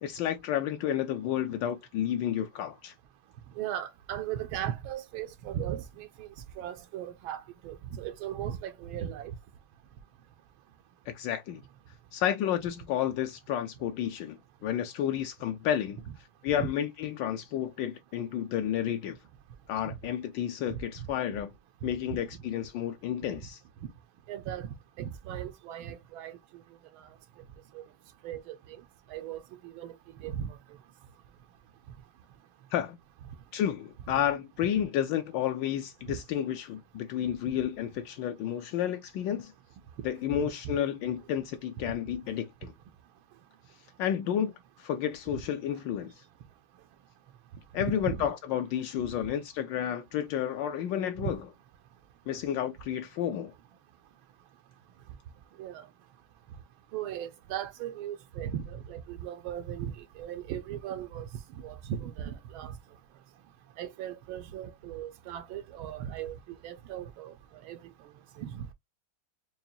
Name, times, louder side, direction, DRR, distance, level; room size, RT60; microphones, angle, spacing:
voice 1, 0.0-2.9 11.1-11.6 12.1-16.0 16.4-19.2 19.7-21.5 21.8-23.6 32.7-33.0 33.5-39.5 40.0-42.7 44.0-44.5 44.8-46.1 47.7-51.4 52.3-53.5, left 10 dB, 75° left, 1.2 m, -31 dB
voice 2, 3.6-6.3 6.6-9.3 16.6-16.7 19.8-19.9 20.7-20.8 23.8-23.9 24.3-24.7 25.0-26.4 27.0-27.1 27.7-27.8 28.2-28.6 29.1-29.9 30.2-30.6 36.1-36.2 40.4-40.5 47.8-48.2 51.2-51.3 55.6-55.9 56.9-61.3 61.6-62.8 63.8-66.4 66.6-67.3 67.6-67.8 68.4-68.7, right 10 dB, 85° right, 1.5 m, -37 dB
5.5 x 2.2 x 2.6 m
omnidirectional pair, 2.2 m